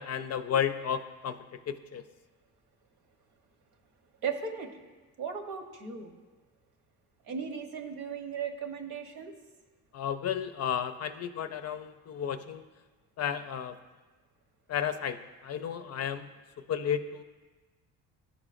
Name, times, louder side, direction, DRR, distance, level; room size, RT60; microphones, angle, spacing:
voice 1, 0.0-1.4 1.7-2.0 9.9-12.6 13.2-13.8 14.7-15.2 15.4-16.3 16.7-17.2, left 8 dB, 45° left, 10 dB, 0.5 m, -32 dB
voice 2, 4.2-4.7 5.2-6.1 7.3-9.3, right 6 dB, 75° right, 4 dB, 1.1 m, -36 dB
12.5 x 4.9 x 2.5 m, 1.3 s
supercardioid pair, 85°, 36 cm